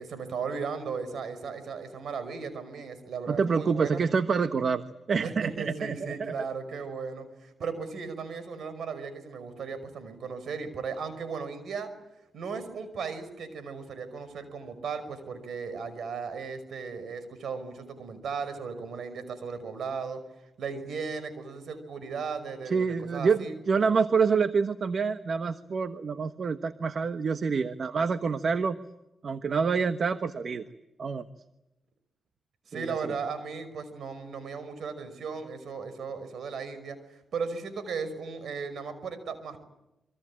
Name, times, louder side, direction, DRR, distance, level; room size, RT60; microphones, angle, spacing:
voice 1, 0.0-4.0 5.2-11.9 12.3-20.2 20.6-23.6 32.7-39.6, right 5 dB, 75° right, 12 dB, 5.7 m, -36 dB
voice 2, 3.3-4.8 5.1-6.5 22.6-28.8 29.2-30.6 31.0-31.2 32.7-33.1, right 5 dB, 60° right, 10 dB, 1.2 m, -27 dB
27.0 x 25.0 x 8.8 m, 0.93 s
cardioid pair, 65°, 0 cm